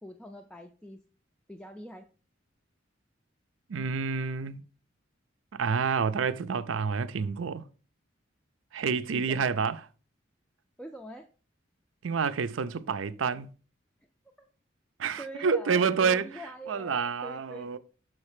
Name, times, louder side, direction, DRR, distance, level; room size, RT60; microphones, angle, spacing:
voice 1, 0.0-1.0 1.5-2.1 9.1-9.5 10.8-11.3 14.4-14.5 15.2-17.8, equal, 5° left, 0.4 m, -44 dB
voice 2, 3.7-4.6 5.5-7.6 8.7-9.8 12.0-13.5 15.0-16.3 16.7-17.8, right 5 dB, 85° right, 0.5 m, -28 dB
6.3 x 4.2 x 4.9 m
head